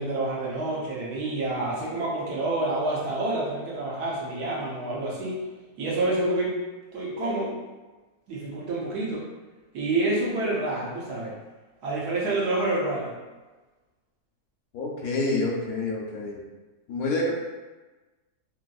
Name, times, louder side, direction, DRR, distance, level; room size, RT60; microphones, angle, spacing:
voice 1, 0.0-5.4 5.8-6.6 6.9-7.6 8.3-9.2 9.7-11.4 11.8-13.1, right 2 dB, 80° right, -5 dB, 1.3 m, -28 dB
voice 2, 14.7-16.4 16.9-17.3, left 2 dB, 70° left, -2 dB, 0.9 m, -27 dB
3.3 x 2.8 x 2.3 m, 1.2 s
omnidirectional pair, 1.7 m